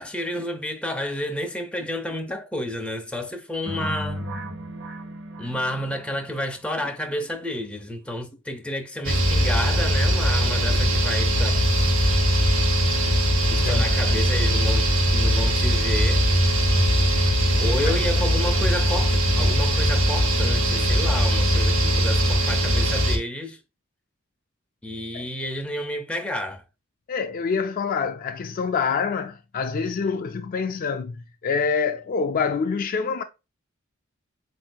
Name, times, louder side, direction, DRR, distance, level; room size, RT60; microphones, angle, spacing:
voice 1, 0.0-4.2 5.4-11.6 13.5-16.3 17.2-23.6 24.8-26.6, left 1 dB, 5° left, 0.7 m, -31 dB
sound 1, 3.7-6.5, equal, 60° right, 0.9 m, -34 dB
sound 2, 9.0-23.2, equal, 85° right, 1.1 m, -20 dB
voice 2, 27.1-33.2, left 5 dB, 45° left, 0.3 m, -26 dB
7.4 x 2.6 x 2.2 m
head